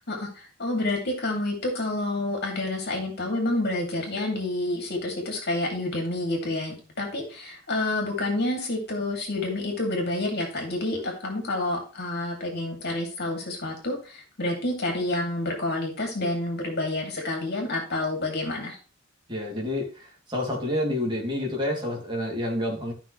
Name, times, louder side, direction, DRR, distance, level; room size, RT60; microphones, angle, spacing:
voice 1, 0.1-18.8, left 2 dB, 55° left, 1 dB, 2.8 m, -29 dB
voice 2, 19.3-22.9, left 1 dB, 25° right, -2 dB, 2.9 m, -29 dB
13.5 x 5.8 x 3.3 m, 0.34 s
head